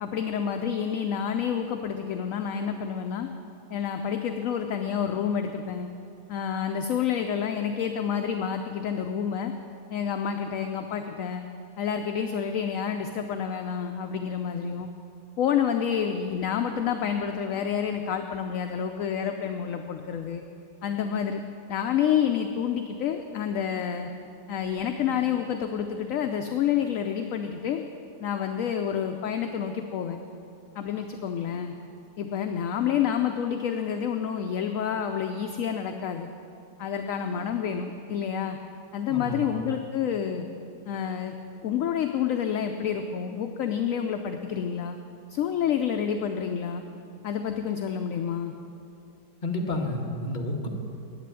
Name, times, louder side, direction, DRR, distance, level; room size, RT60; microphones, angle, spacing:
voice 1, 0.0-3.3 3.7-5.9 6.3-9.5 9.9-11.4 11.8-14.9 15.4-20.4 20.8-21.4 21.7-24.1 24.5-27.8 28.2-30.2 30.8-31.7 32.2-36.3 36.8-38.6 38.9-40.4 40.9-41.3 41.6-45.0 45.3-46.8 47.2-48.5, left 8 dB, 65° left, 6 dB, 0.9 m, -28 dB
voice 2, 39.1-39.5 49.4-50.7, left 1 dB, 30° left, 1 dB, 1.3 m, -30 dB
10.0 x 8.3 x 9.0 m, 2.7 s
omnidirectional pair, 1.8 m